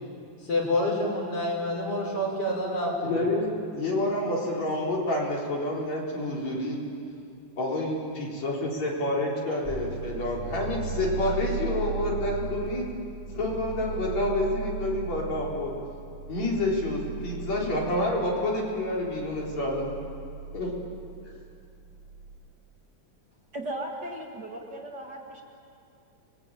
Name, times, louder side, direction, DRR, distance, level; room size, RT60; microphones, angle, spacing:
voice 1, 0.4-3.1, left 1 dB, 50° left, -1 dB, 6.8 m, -27 dB
voice 2, 3.0-6.8 7.6-12.9 13.3-15.7 16.3-19.9 20.5-20.7 21.3-21.4, left 1 dB, 65° left, -3 dB, 5.4 m, -28 dB
sound 1, 9.6-22.4, right 5 dB, 20° right, 2.2 m, -37 dB
voice 3, 23.5-25.4, right 1 dB, 40° right, 0 dB, 2.3 m, -36 dB
30.0 x 22.0 x 9.0 m, 2.5 s
omnidirectional pair, 3.3 m